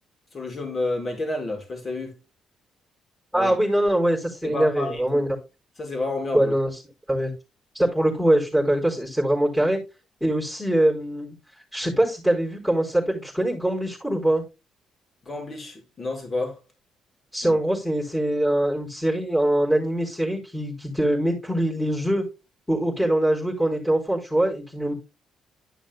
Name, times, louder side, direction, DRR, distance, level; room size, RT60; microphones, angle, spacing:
voice 1, 0.3-2.1 3.3-3.5 4.4-5.2 5.8-6.5 15.2-16.6 17.4-17.6, left 2 dB, 35° left, 5.0 m, -30 dB
voice 2, 3.3-5.3 6.3-6.7 7.1-7.3 7.7-9.8 10.2-11.3 11.7-14.4 17.3-22.2 22.7-24.9, right 1 dB, 5° left, 4.3 m, -23 dB
13.0 x 6.2 x 2.2 m
cardioid pair, 90°, 0 cm